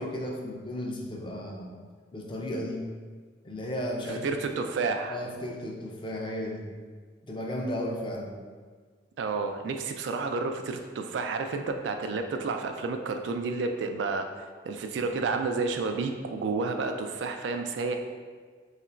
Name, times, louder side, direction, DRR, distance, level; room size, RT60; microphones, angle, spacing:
voice 1, 0.0-1.7 2.1-2.9 3.4-4.3 5.1-6.7 7.2-8.4, left 1 dB, 30° left, 0 dB, 0.5 m, -34 dB
voice 2, 4.1-5.2 9.2-14.3 14.7-18.0, right 4 dB, 85° right, 5 dB, 0.3 m, -30 dB
2.9 x 2.4 x 4.3 m, 1.5 s
head